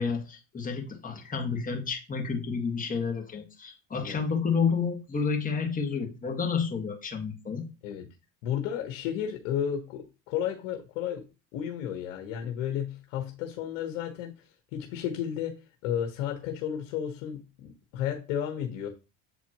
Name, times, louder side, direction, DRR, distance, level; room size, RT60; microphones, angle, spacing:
voice 1, 0.0-7.7, left 5 dB, 20° left, 2 dB, 1.7 m, -30 dB
voice 2, 8.4-11.3 11.5-18.9, left 9 dB, 80° left, 5 dB, 1.2 m, -33 dB
8.0 x 4.2 x 3.0 m, 0.29 s
supercardioid pair, 105°, 37 cm